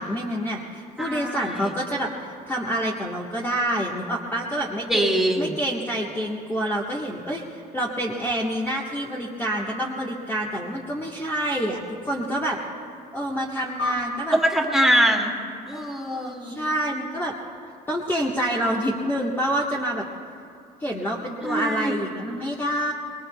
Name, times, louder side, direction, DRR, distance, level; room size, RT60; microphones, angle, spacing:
voice 1, 0.0-2.1 2.5-5.1 5.4-12.6 13.1-14.4 15.7-17.3 17.9-20.0 20.8-22.9, equal, 15° left, -3 dB, 1.4 m, -27 dB
voice 2, 1.0-1.7 4.9-5.5 14.3-15.3 15.7-16.6 21.4-21.9, right 1 dB, ahead, 0 dB, 2.1 m, -23 dB
sound 1, 13.8-16.5, left 2 dB, 60° left, 4.3 m, -35 dB
24.5 x 21.5 x 2.3 m, 2.4 s
cardioid pair, 110°, 17 cm